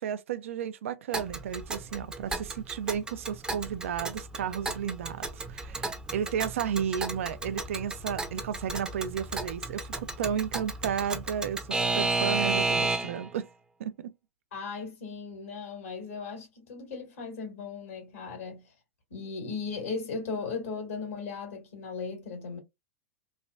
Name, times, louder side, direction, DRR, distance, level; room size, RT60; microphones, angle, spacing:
voice 1, 0.0-13.5 13.8-14.1, right 8 dB, 65° right, 0.4 m, -33 dB
Alarm / Clock, 1.1-13.3, right 3 dB, 10° right, 0.6 m, -33 dB
voice 2, 14.5-18.7 19.1-22.6, left 4 dB, 70° left, 1.6 m, -37 dB
3.1 x 2.3 x 2.4 m
hypercardioid pair, 100°, 8 cm